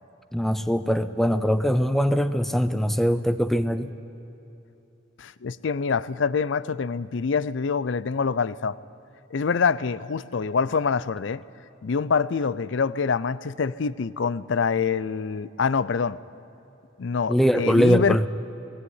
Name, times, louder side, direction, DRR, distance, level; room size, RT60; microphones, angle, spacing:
voice 1, 0.3-3.9 17.3-18.3, equal, ahead, 11 dB, 0.6 m, -22 dB
voice 2, 5.2-8.8 9.3-11.4 11.8-16.2 17.0-18.3, left 5 dB, 65° left, 18 dB, 0.5 m, -25 dB
17.0 x 16.5 x 9.6 m, 2.9 s
head